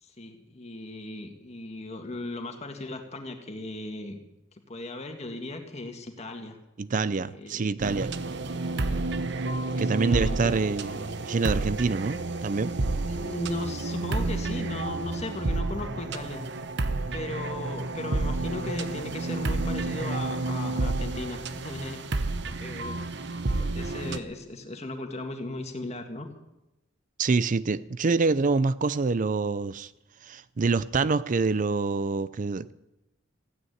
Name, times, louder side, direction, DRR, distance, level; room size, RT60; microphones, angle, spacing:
voice 1, 0.0-4.2 4.7-6.6 7.3-7.7 9.8-10.5 13.0-16.4 17.1-22.1 22.4-26.3, left 2 dB, 35° left, 5 dB, 2.0 m, -37 dB
voice 2, 6.8-8.1 9.8-12.7 27.2-29.9 30.2-32.7, right 4 dB, 40° right, 16 dB, 0.4 m, -26 dB
sound 1, 7.8-24.2, right 2 dB, 60° right, 0.9 m, -30 dB
15.5 x 9.5 x 9.4 m, 0.94 s
head